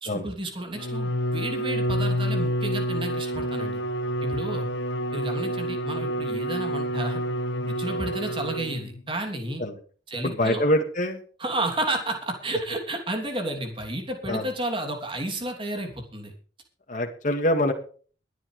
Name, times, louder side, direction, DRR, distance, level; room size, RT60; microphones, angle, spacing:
voice 1, 0.0-3.8 4.2-4.7 5.1-7.2 7.6-9.6 10.1-10.6 11.4-16.3, right 1 dB, 30° right, 2 dB, 3.1 m, -31 dB
Bowed string instrument, 0.7-9.0, equal, 85° left, 1.3 m, -28 dB
voice 2, 10.2-11.2 14.3-14.5 16.9-17.7, left 1 dB, 45° left, 3 dB, 2.1 m, -24 dB
22.0 x 10.0 x 3.3 m, 0.41 s
head